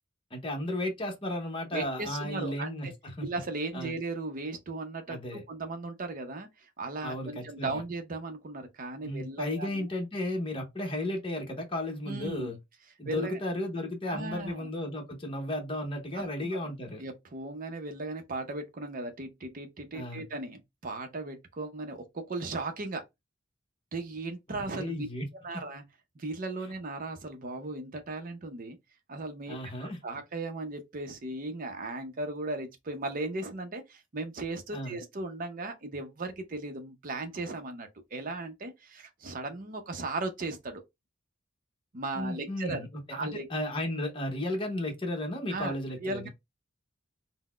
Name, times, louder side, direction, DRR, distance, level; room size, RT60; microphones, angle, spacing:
voice 1, 0.3-3.3 3.7-3.9 5.1-5.4 7.0-7.8 9.0-12.6 13.0-17.0 19.9-20.3 24.5-25.2 29.5-30.0 34.7-35.0 42.1-46.3, left 1 dB, 25° left, 0.8 m, -34 dB
voice 2, 1.7-2.9 3.2-9.9 12.1-12.6 13.0-13.4 14.1-14.7 16.1-16.6 17.0-23.0 23.9-25.1 25.4-25.8 26.2-28.8 29.1-40.8 41.9-42.8 43.1-43.5 45.5-45.7 46.0-46.3, right 2 dB, 40° right, 0.6 m, -37 dB
3.9 x 2.1 x 2.3 m
head